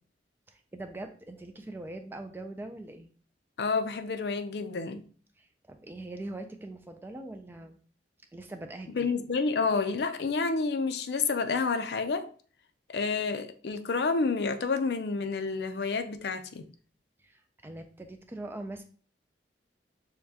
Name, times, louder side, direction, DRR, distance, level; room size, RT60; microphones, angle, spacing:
voice 1, 0.5-3.1 5.4-7.8 8.3-9.1 17.2-18.8, right 2 dB, 10° right, 0.3 m, -42 dB
voice 2, 3.6-5.0 8.9-12.3 12.9-16.7, left 4 dB, 65° left, 0.5 m, -29 dB
6.6 x 2.2 x 2.8 m
head